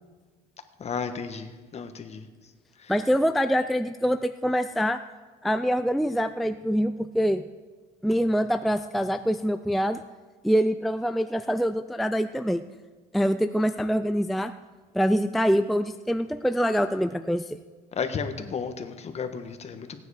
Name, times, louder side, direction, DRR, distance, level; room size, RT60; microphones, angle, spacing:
voice 1, 0.8-2.2 18.0-20.0, left 6 dB, 40° left, 8 dB, 1.3 m, -33 dB
voice 2, 2.9-5.0 5.4-7.4 8.0-10.0 10.4-12.6 13.1-14.5 14.9-17.6, equal, ahead, 9 dB, 0.3 m, -25 dB
17.5 x 9.4 x 4.9 m, 1.4 s
cardioid pair, 110°, 17 cm